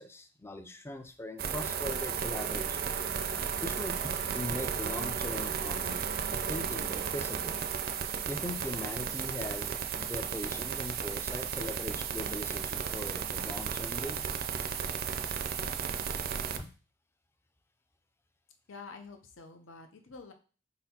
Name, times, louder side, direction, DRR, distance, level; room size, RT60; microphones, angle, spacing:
voice 1, 0.0-2.9 3.6-6.0 6.3-7.6 8.2-14.3 16.6-16.7, left 1 dB, 15° left, 8 dB, 0.4 m, -40 dB
sound 1, 1.4-16.6, right 7 dB, 50° right, 0.4 m, -34 dB
voice 2, 18.7-20.3, left 4 dB, 85° left, 5 dB, 0.7 m, -48 dB
4.5 x 4.0 x 2.8 m, 0.37 s
head